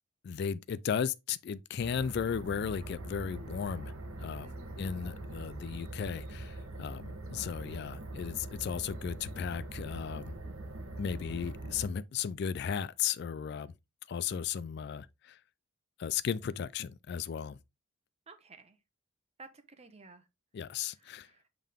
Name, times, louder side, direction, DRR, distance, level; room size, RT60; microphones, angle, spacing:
voice 1, 0.2-4.5 4.8-10.3 11.0-13.7 14.1-15.4 16.0-17.6 20.5-21.3, left 7 dB, 50° left, 0.3 m, -35 dB
sound 1, 1.8-11.9, right 2 dB, 80° right, 1.0 m, -43 dB
voice 2, 4.4-4.8 18.3-18.8 19.4-20.2 21.0-21.5, right 3 dB, 30° right, 0.9 m, -54 dB
7.5 x 3.6 x 3.5 m
head